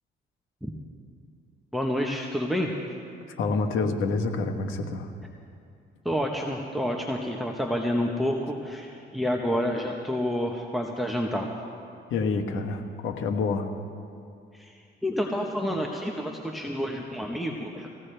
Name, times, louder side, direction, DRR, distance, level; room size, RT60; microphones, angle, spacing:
voice 1, 1.7-2.7 6.0-11.5 14.5-17.9, equal, ahead, 0 dB, 1.1 m, -29 dB
voice 2, 3.4-5.1 12.1-13.7, left 4 dB, 80° left, 5 dB, 1.2 m, -27 dB
20.5 x 16.0 x 3.4 m, 2.5 s
cardioid pair, 90°, 20 cm